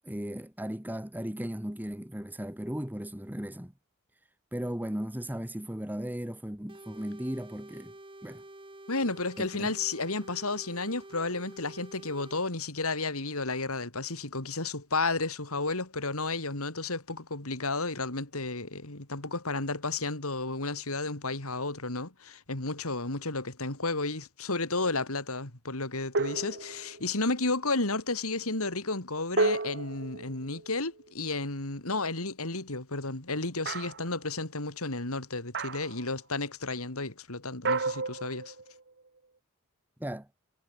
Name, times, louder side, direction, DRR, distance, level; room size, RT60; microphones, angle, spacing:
voice 1, 0.0-3.7 4.5-7.9 8.2-8.4 9.4-9.7 40.0-40.3, equal, 10° right, 1.3 m, -36 dB
sound 1, 6.7-12.4, right 1 dB, 25° right, 3.4 m, -49 dB
voice 2, 8.9-38.5, left 3 dB, 70° left, 3.7 m, -32 dB
sound 2, 26.1-27.1 29.4-31.1 33.7-34.1 35.5-36.0 37.7-38.9, right 3 dB, 50° right, 2.1 m, -32 dB
head